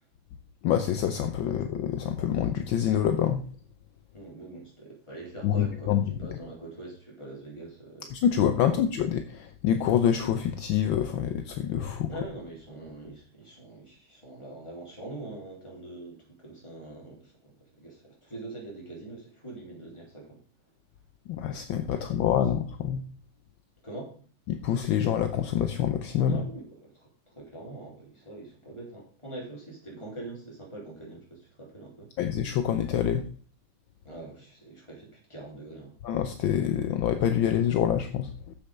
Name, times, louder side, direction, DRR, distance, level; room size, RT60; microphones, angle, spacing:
voice 1, 0.6-3.4 5.4-6.0 8.1-12.1 21.3-23.0 24.5-26.4 32.2-33.2 36.0-38.5, left 9 dB, 70° left, 7 dB, 1.4 m, -26 dB
voice 2, 4.1-8.1 8.5-8.7 12.1-20.4 22.0-22.3 23.8-24.1 26.2-32.1 34.0-35.9, right 2 dB, 15° left, -3 dB, 3.8 m, -43 dB
7.4 x 7.4 x 6.6 m, 0.43 s
omnidirectional pair, 2.4 m